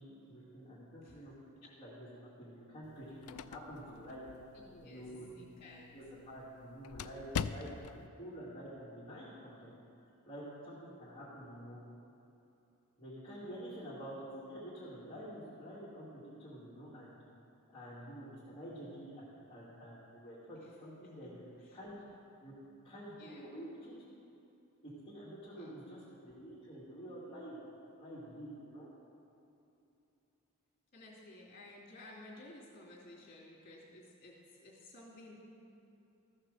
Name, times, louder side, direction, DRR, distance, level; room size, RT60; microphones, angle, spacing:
voice 1, 0.0-1.3 1.8-2.1 2.4-4.2 4.8-5.3 5.9-7.9 8.2-9.8 10.2-11.8 13.0-17.2 17.7-21.4 21.7-21.9 22.4-22.5 22.8-23.9 24.8-27.6 28.0-28.9, equal, 25° left, -10 dB, 2.4 m, -48 dB
sound 1, 2.8-8.1, left 6 dB, 85° left, 0.4 m, -44 dB
voice 2, 4.5-5.1 5.4-5.9 20.6-20.7 21.0-21.1 21.6-21.8 23.2-23.5 25.4-25.7 30.9-35.4, left 2 dB, 45° left, -4 dB, 3.0 m, -54 dB
14.0 x 6.5 x 6.6 m, 2.8 s
head